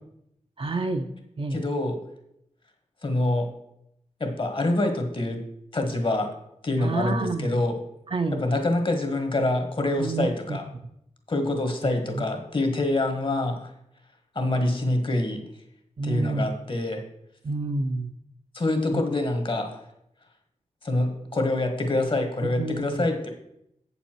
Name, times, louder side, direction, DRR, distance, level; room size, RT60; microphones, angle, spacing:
voice 1, 0.6-1.1 1.4-1.6 6.8-7.5 8.1-8.4 10.0-10.6 16.0-16.5 17.4-18.1 18.9-19.0 22.6-23.1, right 3 dB, 45° right, 6 dB, 0.6 m, -28 dB
voice 2, 1.5-2.0 3.0-3.5 4.2-5.4 5.7-6.3 6.6-7.8 8.3-10.6 11.3-13.7 14.3-15.4 16.0-17.0 18.5-19.8 20.8-23.3, left 2 dB, 45° left, 5 dB, 1.5 m, -26 dB
8.4 x 7.0 x 4.5 m, 0.77 s
wide cardioid pair, 110°, 12 cm